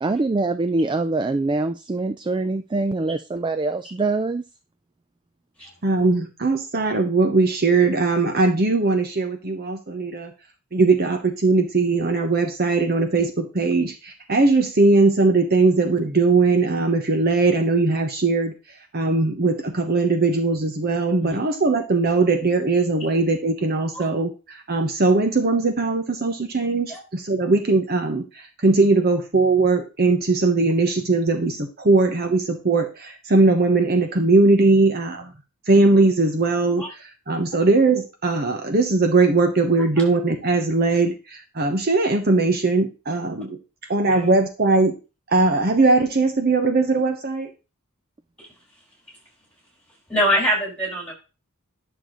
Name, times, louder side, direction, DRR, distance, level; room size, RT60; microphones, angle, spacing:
voice 1, 0.0-4.4, right 2 dB, 20° right, 11 dB, 0.3 m, -24 dB
voice 2, 5.8-10.3 10.7-18.5 18.9-35.3 35.7-43.6 43.9-45.0 45.3-47.5, right 3 dB, 45° right, 5 dB, 1.0 m, -20 dB
voice 3, 50.1-51.1, equal, 5° left, -4 dB, 5.3 m, -23 dB
11.0 x 6.8 x 3.1 m, 0.31 s
head